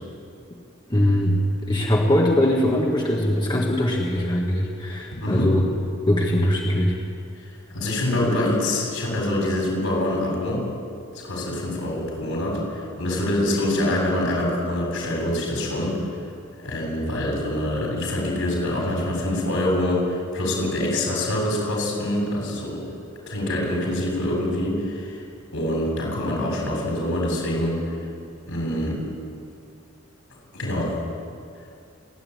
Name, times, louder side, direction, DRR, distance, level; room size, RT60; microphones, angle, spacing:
voice 1, 0.9-5.6 6.1-7.0, left 1 dB, 20° left, -1 dB, 1.7 m, -21 dB
voice 2, 5.1-5.5 7.7-10.7 11.1-16.0 16.6-22.8 23.3-25.2 25.5-27.8 28.5-29.0 30.5-31.0, left 1 dB, 80° left, -1 dB, 7.6 m, -25 dB
29.0 x 10.5 x 9.4 m, 2.4 s
head